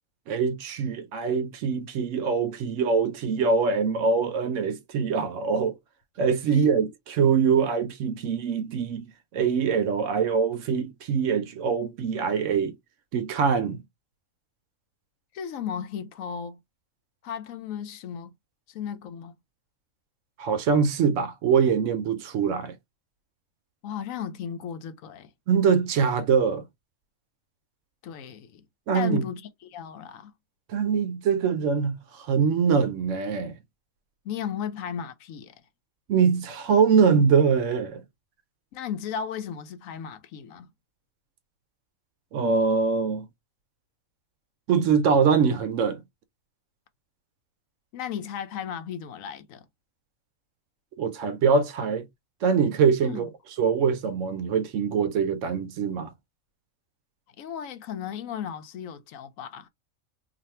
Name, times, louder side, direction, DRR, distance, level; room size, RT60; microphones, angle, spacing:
voice 1, 0.3-5.8 6.2-9.1 9.3-12.8 13.1-13.8 20.4-22.8 25.5-26.6 28.9-29.2 30.7-33.6 36.1-38.0 42.3-43.3 44.7-46.0 51.0-52.1 52.4-53.3 53.6-56.1, right 6 dB, 70° right, 0.9 m, -23 dB
voice 2, 15.3-16.6 17.2-18.3 18.7-19.3 23.8-25.3 28.0-28.7 28.9-30.3 34.2-35.6 38.7-40.7 47.9-49.6 53.0-53.3 57.4-59.7, left 8 dB, 75° left, 1.0 m, -35 dB
2.6 x 2.4 x 4.2 m
omnidirectional pair, 1.4 m